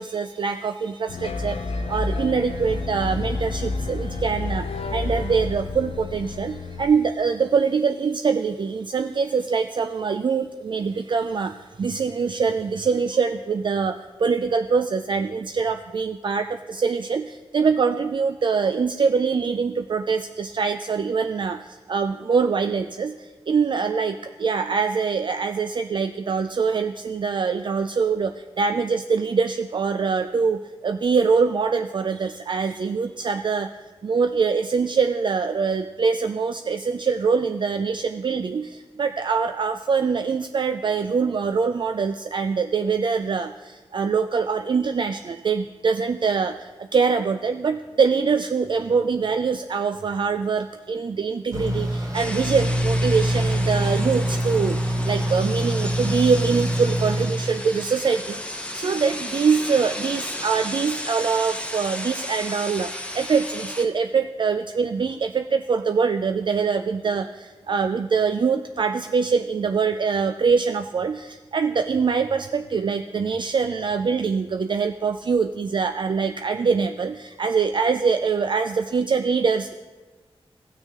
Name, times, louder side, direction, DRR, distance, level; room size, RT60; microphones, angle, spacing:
voice 1, 0.0-33.7 34.0-79.7, right 5 dB, 50° right, 8 dB, 0.3 m, -24 dB
sound 1, 1.1-6.8, left 3 dB, 75° left, 0.6 m, -29 dB
sound 2, 51.5-57.3, equal, 35° right, 2.5 m, -24 dB
sound 3, 52.1-63.9, left 1 dB, 10° left, 0.8 m, -34 dB
16.0 x 6.3 x 3.6 m, 1.3 s
wide cardioid pair, 90°, 10 cm